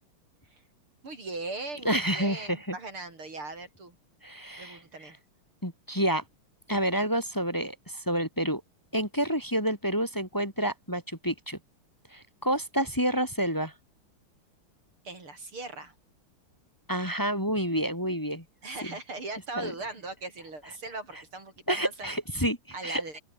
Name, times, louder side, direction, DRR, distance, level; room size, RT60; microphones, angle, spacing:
voice 1, 1.0-4.0 4.6-5.2 15.0-15.9 18.6-22.2 22.7-23.2, right 3 dB, 75° right, 7.1 m, -39 dB
voice 2, 1.8-2.7 4.2-4.8 5.6-6.2 6.7-8.6 8.9-11.6 12.1-13.7 16.9-18.4 19.6-19.7 21.7-22.6 22.8-23.0, equal, 10° left, 4.1 m, -28 dB
open air
omnidirectional pair, 2.4 m